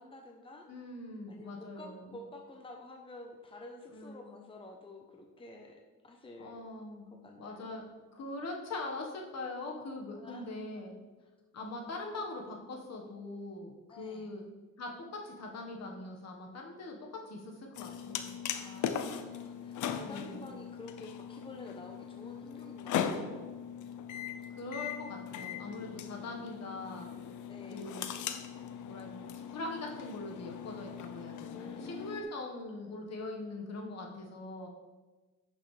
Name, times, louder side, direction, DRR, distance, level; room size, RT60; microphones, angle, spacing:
voice 1, 0.0-0.7 1.3-6.7 7.1-7.8 8.3-8.4 10.2-10.5 10.7-10.8 13.9-14.4 18.5-23.6 27.4-28.0 31.4-32.3, left 2 dB, 15° left, 2 dB, 0.9 m, -50 dB
voice 2, 0.7-2.0 3.9-4.3 6.4-7.1 7.3-7.8 8.1-10.9 11.5-14.4 14.8-18.3 20.0-20.5 24.5-27.1 27.7-28.2 28.8-34.7, left 2 dB, 60° left, 1 dB, 1.7 m, -42 dB
sound 1, 17.7-32.2, left 8 dB, 80° left, 0.7 m, -39 dB
10.5 x 6.5 x 3.4 m, 1.2 s
cardioid pair, 90°, 30 cm